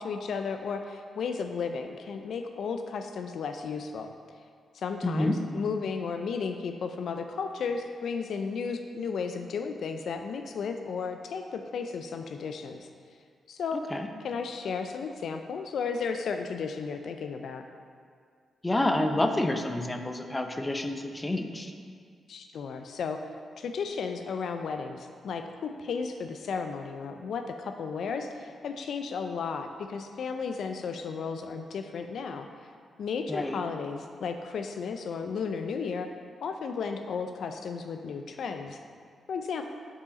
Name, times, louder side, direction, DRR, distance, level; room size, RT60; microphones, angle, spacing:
voice 1, 0.0-4.1 4.7-12.9 13.5-13.8 14.2-17.6 22.3-23.2 23.6-32.5 33.0-36.1 36.4-38.8 39.3-39.6, left 5 dB, 75° left, 6 dB, 0.3 m, -34 dB
voice 2, 5.0-5.4 13.9-14.1 18.6-21.7 33.3-33.6, left 1 dB, 20° left, 5 dB, 0.5 m, -28 dB
5.6 x 4.6 x 4.1 m, 2.1 s
cardioid pair, 65°, 0 cm